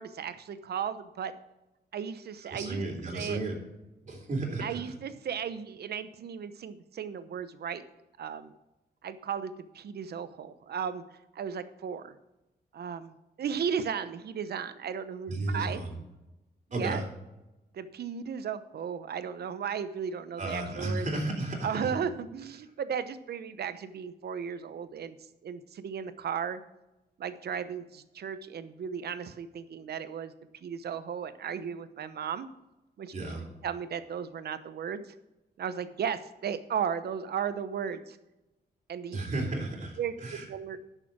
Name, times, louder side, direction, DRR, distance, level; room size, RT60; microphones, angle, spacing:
voice 1, 0.0-1.3 1.9-2.8 3.1-3.4 4.6-7.8 8.2-8.5 9.0-11.0 11.3-12.1 12.7-13.1 13.4-15.8 16.7-17.0 17.7-21.1 21.6-25.1 25.4-26.6 27.2-30.3 30.6-32.5 33.0-33.1 33.6-35.0 35.6-38.2 38.9-39.2 40.0-40.1 40.5-40.8, right 7 dB, 70° right, 12 dB, 0.9 m, -35 dB
voice 2, 2.5-3.6 4.1-4.8 15.3-16.0 16.7-17.0 20.4-22.0 33.1-33.5 39.1-40.4, right 2 dB, 45° right, 0 dB, 3.6 m, -33 dB
10.5 x 6.8 x 6.1 m, 0.97 s
wide cardioid pair, 125°, 17 cm